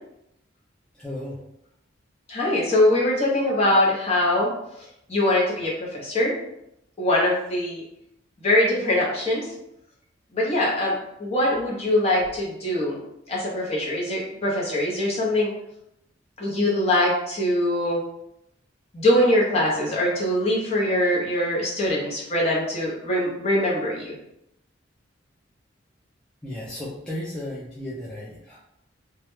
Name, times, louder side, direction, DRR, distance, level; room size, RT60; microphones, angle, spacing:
voice 1, 0.9-1.4 26.4-28.6, left 1 dB, 5° left, -8 dB, 0.3 m, -34 dB
voice 2, 2.3-4.5 5.1-6.3 7.0-7.8 8.4-9.5 10.3-13.0 13.3-15.5 16.4-18.0 18.9-24.2, left 1 dB, 30° left, -4 dB, 0.7 m, -22 dB
2.3 x 2.1 x 3.0 m, 0.80 s
head